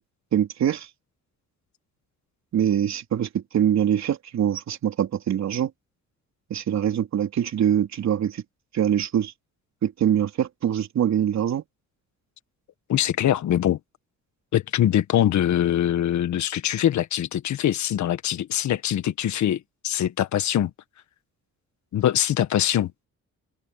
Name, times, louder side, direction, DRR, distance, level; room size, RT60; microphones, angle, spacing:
voice 1, 0.3-0.9 2.5-5.7 6.5-8.4 8.7-9.3 9.8-11.6, right 9 dB, 65° right, 3.6 m, -23 dB
voice 2, 12.9-13.8 14.5-20.7 21.9-23.1, left 11 dB, 70° left, 1.6 m, -23 dB
cardioid pair, 90°, 30 cm